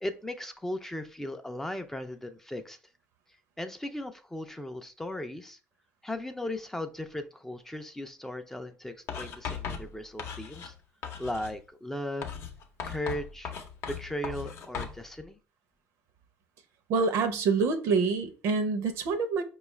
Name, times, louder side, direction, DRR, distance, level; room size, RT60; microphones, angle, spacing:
voice 1, 0.0-2.8 3.6-5.6 6.0-10.7 11.2-12.3 12.8-13.5 13.9-15.4, left 1 dB, 10° left, 0.4 m, -37 dB
Writing, 9.1-10.8 11.0-11.6 12.2-15.0, left 6 dB, 60° left, 0.6 m, -38 dB
voice 2, 16.9-19.4, right 4 dB, 75° right, 0.6 m, -26 dB
4.7 x 2.3 x 3.0 m
cardioid pair, 110°, 5 cm